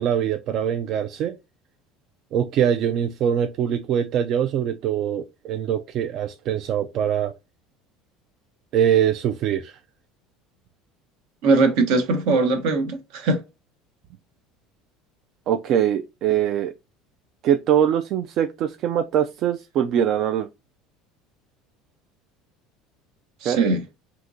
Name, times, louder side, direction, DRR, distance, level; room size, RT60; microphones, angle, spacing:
voice 1, 0.0-1.3 2.3-7.3 8.7-9.8 15.5-16.7 17.4-20.5 23.4-23.6, right 9 dB, 50° right, 0.3 m, -23 dB
voice 2, 11.4-13.4 23.4-23.8, right 3 dB, 70° right, 1.0 m, -20 dB
3.5 x 2.9 x 2.6 m
supercardioid pair, 120°, 0 cm